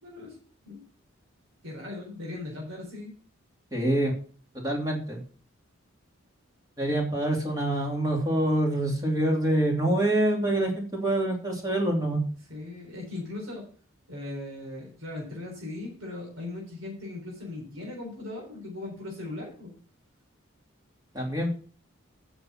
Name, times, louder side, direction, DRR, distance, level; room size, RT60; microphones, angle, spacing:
voice 1, 0.0-0.4 0.6-0.8 1.6-3.1 12.5-13.7 14.1-19.7, left 2 dB, 80° right, -2 dB, 4.0 m, -38 dB
voice 2, 3.7-4.1 4.5-5.2 6.8-12.2 21.1-21.5, right 1 dB, 20° right, 0 dB, 2.8 m, -26 dB
9.2 x 6.1 x 5.8 m, 0.41 s
head